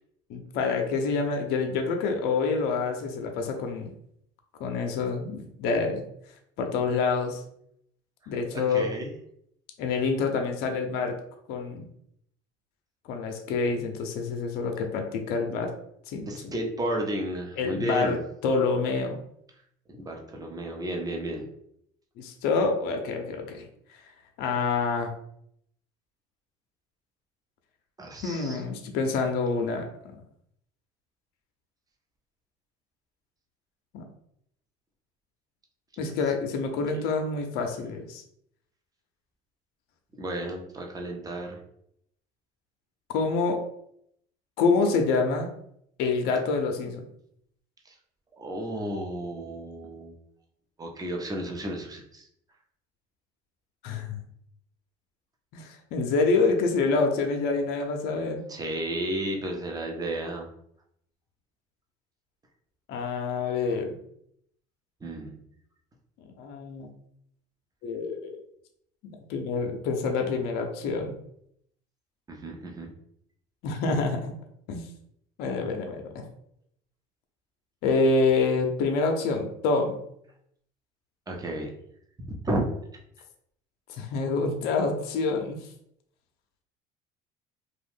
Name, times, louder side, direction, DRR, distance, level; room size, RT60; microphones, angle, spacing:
voice 1, 0.3-3.9 4.6-6.0 6.6-7.4 8.3-8.9 9.8-11.2 11.5-11.9 13.1-15.7 16.1-16.3 17.6-19.2 22.2-23.7 24.4-25.1 28.2-30.2 33.9-34.0 36.0-38.2 43.1-43.6 44.6-45.5 46.0-47.0 53.8-54.2 55.5-58.4 62.9-64.0 66.4-66.9 67.8-68.4 69.3-71.1 73.6-74.3 74.7-74.9 75.4-76.2 77.8-80.0 83.9-85.6, left 4 dB, 65° left, 4 dB, 0.6 m, -27 dB
voice 2, 8.7-9.1 16.3-18.2 20.0-21.5 28.0-28.6 36.0-36.1 36.9-37.1 40.2-41.6 47.9-48.0 48.3-50.2 50.8-52.3 58.5-60.5 65.0-65.4 72.3-72.9 81.3-81.7 82.2-82.7, right 1 dB, 20° right, 2 dB, 0.8 m, -32 dB
2.5 x 2.2 x 3.5 m, 0.71 s
hypercardioid pair, 75°, 18 cm